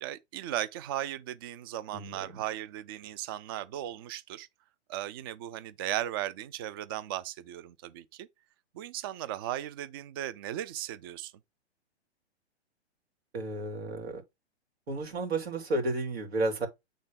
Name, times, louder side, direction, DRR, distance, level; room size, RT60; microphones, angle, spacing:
voice 1, 0.0-4.5 4.9-8.3 8.7-11.3, right 13 dB, 20° right, 0.3 m, -36 dB
voice 2, 1.9-2.4 13.3-14.2 14.9-16.7, right 2 dB, 60° right, 3.0 m, -32 dB
8.5 x 3.8 x 3.7 m
figure-of-eight pair, 120°, 34 cm